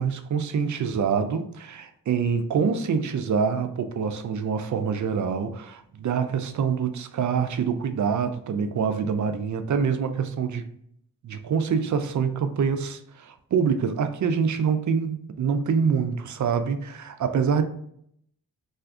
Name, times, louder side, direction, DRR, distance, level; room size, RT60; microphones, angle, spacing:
voice 1, 0.0-10.7 11.2-17.6, right 6 dB, 45° right, 0.5 m, -25 dB
2.5 x 2.3 x 3.6 m
supercardioid pair, 40°, 42 cm